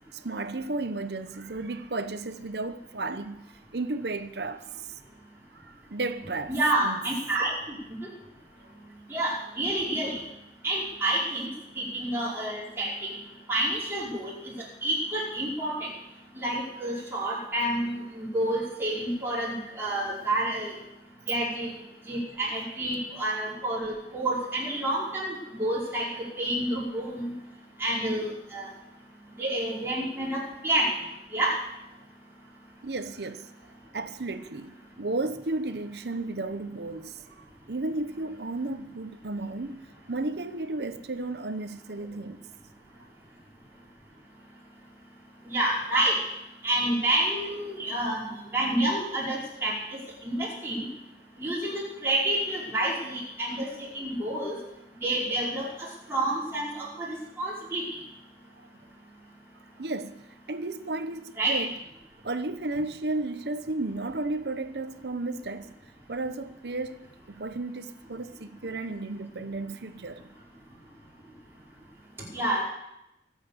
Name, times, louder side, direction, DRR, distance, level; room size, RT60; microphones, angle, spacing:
voice 1, 0.1-3.5 3.7-5.0 5.5-6.5 6.8-7.0 32.8-33.5 33.9-42.4 59.8-60.2 60.5-61.7 62.2-65.7 66.1-70.3, right 2 dB, 70° right, 0.9 m, -33 dB
voice 2, 6.5-7.5 9.1-10.2 10.6-11.5 11.8-13.1 13.5-14.5 14.8-15.7 16.4-20.7 21.3-21.7 22.1-26.1 26.4-27.3 27.8-28.7 29.4-30.9 31.3-31.6 45.5-46.2 46.6-49.7 50.2-50.9 51.4-54.6 55.0-57.8 61.4-61.6 72.3-72.6, right 1 dB, 15° right, 5.2 m, -29 dB
24.0 x 8.3 x 6.8 m
head